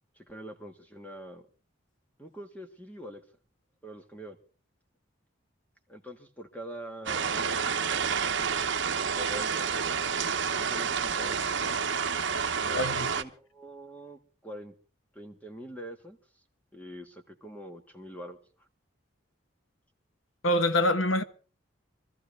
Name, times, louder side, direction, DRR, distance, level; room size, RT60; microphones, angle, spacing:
voice 1, 0.1-1.5 2.2-3.2 3.8-4.4 5.9-8.0 9.2-9.9 10.6-11.7 12.6-14.7 15.1-16.2 16.7-18.7, equal, 10° left, 1.6 m, -44 dB
sound 1, 7.1-13.2, right 6 dB, 60° right, 1.0 m, -29 dB
voice 2, 12.7-13.1 20.4-21.2, left 1 dB, 80° left, 1.2 m, -25 dB
24.5 x 14.0 x 3.4 m
head